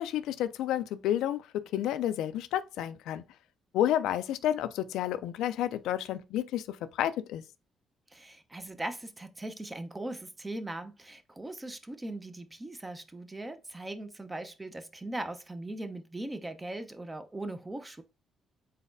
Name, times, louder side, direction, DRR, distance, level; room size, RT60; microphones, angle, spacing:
voice 1, 0.0-1.4 1.7-3.2 3.7-7.4, left 11 dB, 90° left, 0.3 m, -30 dB
voice 2, 8.1-18.0, right 1 dB, 15° right, 0.6 m, -39 dB
4.1 x 3.9 x 2.5 m
cardioid pair, 90°, 0 cm